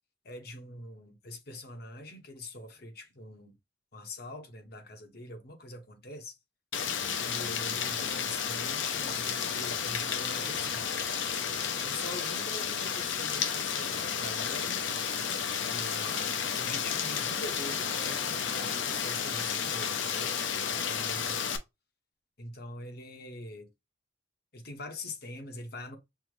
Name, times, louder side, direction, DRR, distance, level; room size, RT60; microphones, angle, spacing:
voice 1, 0.2-3.5 3.9-6.4 7.1-11.0 11.8-14.8 15.7-20.3 20.6-21.5 22.4-23.7 24.5-26.0, left 1 dB, 55° left, 1.0 m, -44 dB
Rain, 6.7-21.6, left 7 dB, 80° left, 0.6 m, -32 dB
sound 1, 9.1-20.6, equal, ahead, 0.5 m, -50 dB
5.6 x 2.1 x 3.1 m
head